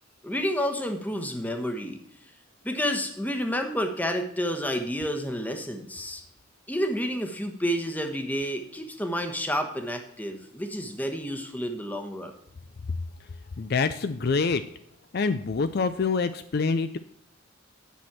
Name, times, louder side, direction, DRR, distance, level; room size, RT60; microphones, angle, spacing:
voice 1, 0.2-2.0 2.6-6.2 6.7-12.3, equal, 10° left, 5 dB, 1.1 m, -30 dB
voice 2, 13.6-14.6 15.1-17.0, left 4 dB, 50° left, 11 dB, 0.4 m, -26 dB
10.0 x 6.2 x 6.0 m, 0.74 s
head